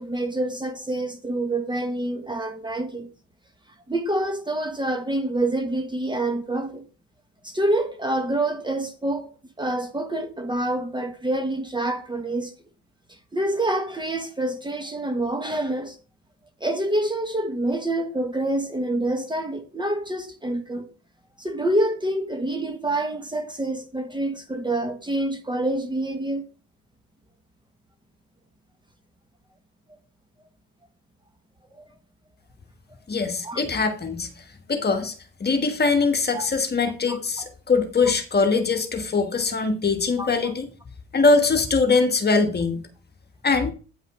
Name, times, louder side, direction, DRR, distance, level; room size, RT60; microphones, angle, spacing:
voice 1, 0.0-3.1 3.9-6.9 7.4-9.3 9.6-12.5 13.1-16.0 16.6-20.9 21.4-26.5 31.7-31.8 33.4-33.6 36.3-36.5 37.1-37.5 40.2-40.3, right 1 dB, 15° right, 1.3 m, -27 dB
voice 2, 33.1-34.3 34.7-35.1 35.4-40.7 41.1-42.8 43.4-43.7, left 4 dB, 25° left, 1.5 m, -22 dB
9.4 x 5.5 x 4.8 m
cardioid pair, 105°, 35 cm